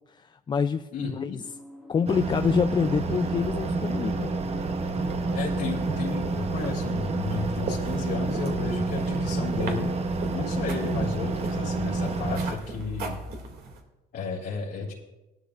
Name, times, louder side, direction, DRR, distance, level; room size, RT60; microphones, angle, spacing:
voice 1, 0.1-1.4 1.9-4.3, left 6 dB, 25° left, 9 dB, 0.4 m, -27 dB
voice 2, 0.9-1.4 5.3-9.9 10.3-13.2 14.1-14.9, left 4 dB, 65° left, -4 dB, 2.2 m, -33 dB
sound 1, 1.4-9.5, equal, 5° right, 2.0 m, -47 dB
sound 2, 2.1-12.6, right 3 dB, 40° right, 1.0 m, -29 dB
sound 3, 4.9-13.8, right 3 dB, 65° right, 2.4 m, -40 dB
18.5 x 12.0 x 2.5 m, 1.0 s
cardioid pair, 110°, 17 cm